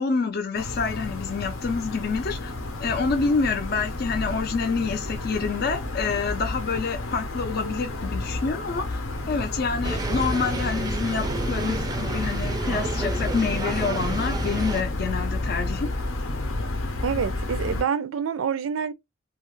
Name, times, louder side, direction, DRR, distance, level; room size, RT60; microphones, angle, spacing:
voice 1, 0.0-2.5 2.8-9.0 9.3-15.9, left 4 dB, 50° left, 0.4 m, -27 dB
sound 1, 0.5-17.8, left 2 dB, 85° left, 0.7 m, -31 dB
sound 2, 9.8-14.8, right 2 dB, 20° right, 0.4 m, -30 dB
voice 2, 17.0-18.9, right 7 dB, 85° right, 0.4 m, -27 dB
2.7 x 2.3 x 3.0 m
head